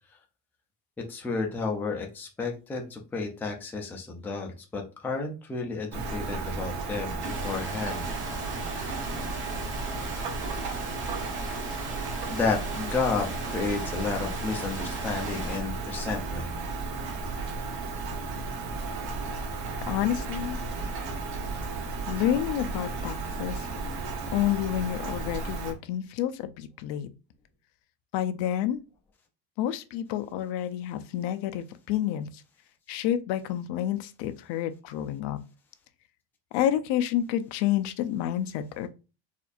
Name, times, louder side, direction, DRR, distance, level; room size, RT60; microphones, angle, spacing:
voice 1, 1.0-8.1 12.3-16.5, left 4 dB, 5° left, 0.3 m, -32 dB
Rain, 5.9-25.7, right 3 dB, 60° right, 1.0 m, -34 dB
sound 1, 7.2-15.6, right 2 dB, 25° right, 1.3 m, -39 dB
voice 2, 19.8-20.6 22.1-23.7 24.3-27.1 28.1-28.8 29.6-32.4 32.9-35.4 36.5-38.9, left 11 dB, 75° left, 0.6 m, -29 dB
4.3 x 2.5 x 2.4 m
cardioid pair, 155°, 43 cm